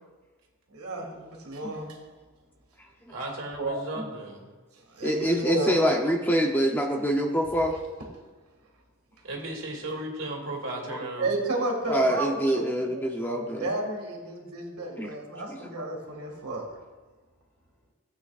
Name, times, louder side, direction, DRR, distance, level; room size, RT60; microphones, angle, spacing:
voice 1, 0.7-2.0 3.6-3.8 4.9-5.9 11.2-12.9 13.2-16.7, right 2 dB, 80° right, 0 dB, 2.0 m, -31 dB
voice 2, 3.1-4.5 9.2-11.3, right 1 dB, 60° right, -1 dB, 2.3 m, -35 dB
voice 3, 5.0-7.8 10.9-11.1 11.9-13.7 15.0-15.1 15.5-15.8, equal, 10° left, 2 dB, 0.6 m, -26 dB
16.0 x 8.4 x 2.4 m, 1.3 s
head